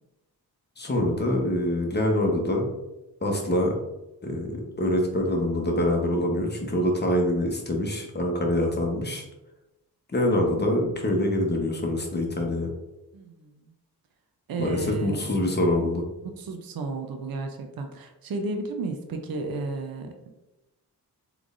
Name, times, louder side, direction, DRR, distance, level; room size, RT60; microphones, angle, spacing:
voice 1, 0.8-2.7 3.2-3.8 4.2-9.2 10.1-12.7 14.6-16.0, left 1 dB, 25° left, 1 dB, 0.9 m, -25 dB
voice 2, 13.1-13.7 14.5-15.5 16.2-20.3, right 2 dB, 60° right, 4 dB, 0.6 m, -33 dB
3.6 x 3.3 x 2.5 m, 0.96 s
cardioid pair, 60°, 40 cm